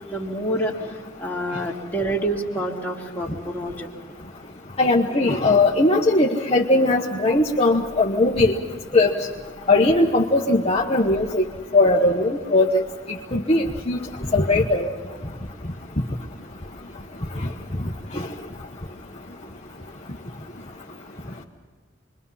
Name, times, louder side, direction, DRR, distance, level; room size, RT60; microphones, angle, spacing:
voice 1, 0.1-0.7 1.2-3.9, right 1 dB, 10° left, -3 dB, 2.5 m, -27 dB
voice 2, 4.8-8.5 8.9-9.1 9.7-11.4 11.7-12.8 13.3-14.0 14.3-14.9, left 2 dB, 30° left, -1 dB, 1.2 m, -19 dB
28.0 x 23.0 x 5.7 m, 1.5 s
head